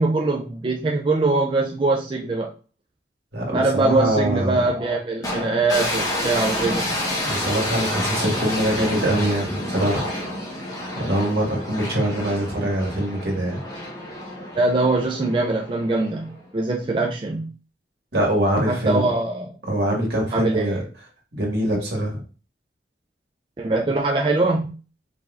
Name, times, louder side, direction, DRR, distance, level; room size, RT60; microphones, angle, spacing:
voice 1, 0.0-2.5 3.5-6.9 14.6-17.5 18.7-19.5 20.3-20.8 23.6-24.8, right 2 dB, 30° right, 0.4 m, -22 dB
voice 2, 3.3-4.7 7.2-10.1 10.9-13.6 18.1-19.1 19.7-20.8 21.4-22.2, right 1 dB, 70° right, 1.7 m, -23 dB
sound 1, 5.2-16.5, left 1 dB, 20° left, 1.2 m, -29 dB
4.8 x 3.8 x 2.4 m
head